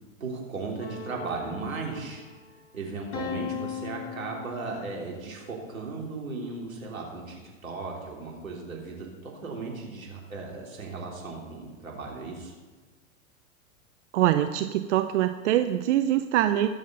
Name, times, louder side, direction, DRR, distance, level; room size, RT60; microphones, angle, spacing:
voice 1, 0.2-2.2 2.7-12.5, right 3 dB, 85° right, -1 dB, 3.5 m, -36 dB
sound 1, 0.8-2.4 3.1-5.1, left 6 dB, 35° left, 2.4 m, -38 dB
voice 2, 14.1-16.7, right 12 dB, 60° right, 9 dB, 0.7 m, -24 dB
20.5 x 7.3 x 4.0 m, 1.4 s
hypercardioid pair, 100°, 40 cm